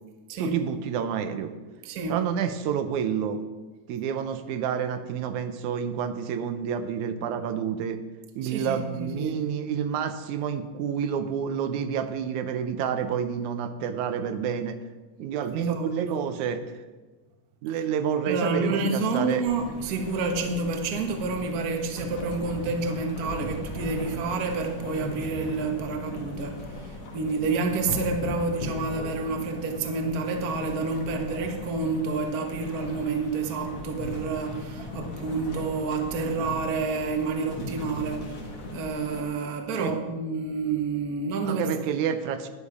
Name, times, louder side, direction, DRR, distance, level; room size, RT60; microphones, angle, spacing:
voice 1, 0.4-1.5 2.1-3.4 3.9-8.0 8.4-14.8 15.2-16.6 17.6-19.4 39.8-39.9 41.4-42.5, right 8 dB, 85° right, 9 dB, 2.2 m, -29 dB
voice 2, 1.8-2.2 8.4-9.4 15.5-16.1 18.3-26.9 27.1-38.3 38.7-41.7, right 3 dB, 50° right, 3 dB, 1.1 m, -29 dB
sound 1, 19.5-39.2, left 2 dB, 50° left, 2.3 m, -38 dB
10.5 x 10.0 x 4.9 m, 1.3 s
omnidirectional pair, 3.4 m